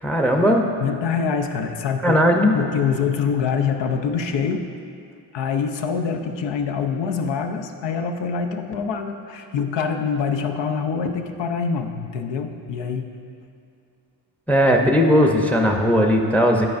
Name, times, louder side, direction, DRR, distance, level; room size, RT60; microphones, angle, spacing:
voice 1, 0.0-0.7 2.0-2.5 14.5-16.7, equal, 5° left, 2 dB, 0.7 m, -17 dB
voice 2, 0.8-2.2 2.5-4.7 5.3-13.1, left 6 dB, 70° left, 5 dB, 0.7 m, -25 dB
11.0 x 4.7 x 2.5 m, 2.5 s
supercardioid pair, 60°, 45 cm